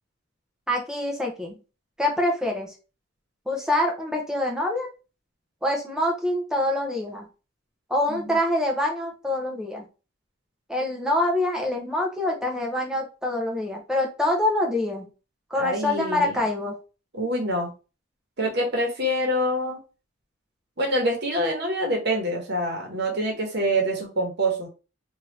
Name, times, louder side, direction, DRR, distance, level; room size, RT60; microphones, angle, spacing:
voice 1, 0.7-1.6 2.0-2.7 3.5-4.9 5.6-7.3 7.9-9.9 10.7-15.1 15.5-16.8, left 1 dB, 5° right, 0 dB, 0.6 m, -25 dB
voice 2, 15.6-16.4 17.1-17.7 18.4-19.8 20.8-24.7, equal, 50° right, 0 dB, 1.0 m, -26 dB
2.8 x 2.5 x 3.1 m, 0.33 s
head